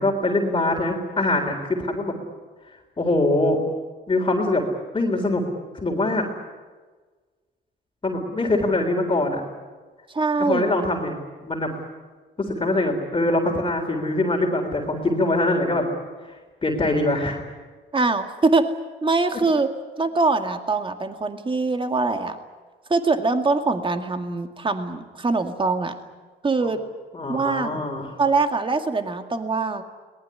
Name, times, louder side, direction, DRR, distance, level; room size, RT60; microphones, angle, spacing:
voice 1, 0.0-2.1 3.0-3.6 4.1-4.6 4.9-5.4 5.7-6.2 8.0-9.4 10.4-11.1 11.4-11.7 12.4-15.9 16.6-17.4 27.1-28.1, left 2 dB, 25° left, 1 dB, 3.8 m, -23 dB
voice 2, 10.1-10.7 17.9-18.7 19.0-19.7 20.0-22.4 22.9-25.9 26.4-26.8 27.3-27.7 28.2-29.8, right 3 dB, 25° right, 6 dB, 2.1 m, -23 dB
22.5 x 19.5 x 9.8 m, 1.4 s
cardioid pair, 90°, 20 cm